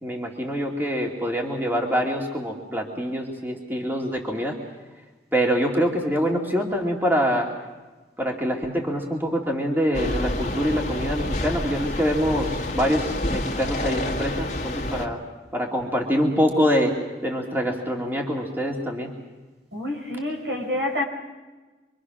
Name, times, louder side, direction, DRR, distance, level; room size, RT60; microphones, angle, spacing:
voice 1, 0.0-4.6 5.3-7.5 8.2-15.2 15.5-16.9 17.2-19.1, equal, 10° right, -1 dB, 2.6 m, -25 dB
sound 1, 9.9-15.1, left 1 dB, 40° left, 2.0 m, -28 dB
voice 2, 19.7-21.0, left 1 dB, 80° right, 3 dB, 5.6 m, -27 dB
27.0 x 23.5 x 6.3 m, 1.2 s
head